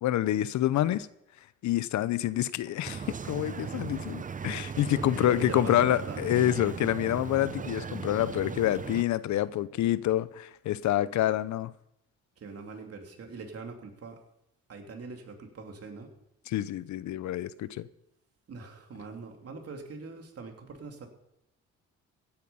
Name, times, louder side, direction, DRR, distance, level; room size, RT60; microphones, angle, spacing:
voice 1, 0.0-1.1 1.6-11.7 16.5-17.9, left 13 dB, 70° left, 0.7 m, -27 dB
sound 1, 2.8-9.0, right 6 dB, 25° right, 0.6 m, -37 dB
voice 2, 4.7-6.2 12.4-14.2 14.7-16.1 18.5-21.1, right 4 dB, 50° right, 2.9 m, -42 dB
16.0 x 9.0 x 5.5 m
cardioid pair, 90°, 30 cm